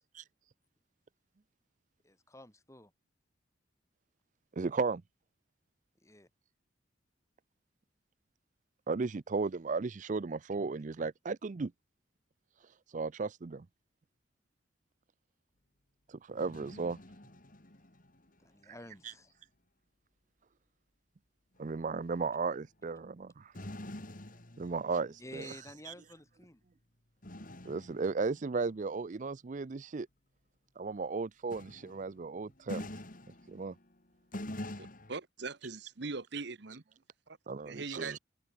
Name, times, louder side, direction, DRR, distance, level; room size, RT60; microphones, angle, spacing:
voice 1, 2.0-2.9 6.0-6.3 18.4-19.3 25.2-26.6, left 1 dB, 15° left, 5.4 m, -51 dB
voice 2, 4.5-5.0 8.9-11.7 12.9-13.7 16.1-17.0 19.0-19.1 21.6-23.5 24.6-25.6 25.9-26.0 27.7-30.1 30.8-32.9 33.5-33.8 37.5-38.2, right 4 dB, 40° right, 0.4 m, -35 dB
sound 1, 16.3-18.4 18.8-19.0 21.7-22.2 22.7-22.8 23.5-25.6 27.2-28.7 31.5-34.0 34.3-35.1, left 1 dB, 45° left, 2.6 m, -46 dB
voice 3, 34.8-36.8 37.3-37.4 37.6-38.2, right 4 dB, 60° right, 1.1 m, -41 dB
open air
head